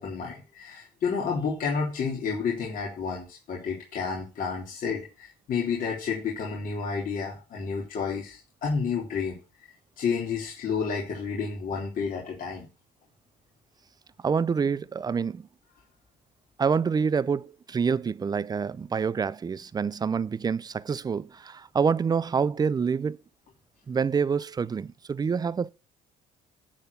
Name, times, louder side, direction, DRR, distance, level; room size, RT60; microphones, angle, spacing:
voice 1, 0.0-9.4 10.0-12.7, left 5 dB, 55° left, 3.4 m, -30 dB
voice 2, 14.2-15.5 16.6-23.2 23.9-25.7, right 6 dB, 25° right, 0.4 m, -27 dB
10.5 x 4.4 x 6.8 m
cardioid pair, 110°, 17 cm